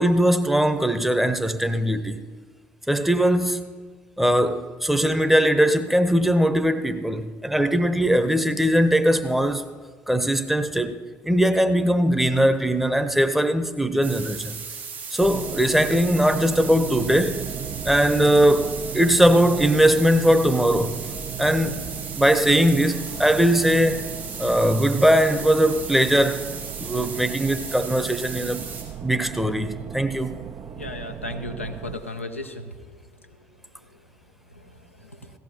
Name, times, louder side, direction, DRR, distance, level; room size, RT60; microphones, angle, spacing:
voice 1, 0.0-2.2 2.9-3.6 4.2-9.6 10.1-14.6 15.1-17.4 17.8-21.0 21.4-21.8 22.2-24.0 24.4-26.4 26.8-28.7 29.0-30.4, equal, 5° right, 0.9 m, -20 dB
sound 1, 14.0-28.8, right 5 dB, 80° right, 4.1 m, -36 dB
sound 2, 15.2-32.0, right 9 dB, 45° right, 0.6 m, -36 dB
voice 2, 30.8-32.7 35.0-35.3, left 2 dB, 90° left, 0.6 m, -34 dB
16.5 x 14.0 x 2.9 m
figure-of-eight pair, 50°, 7 cm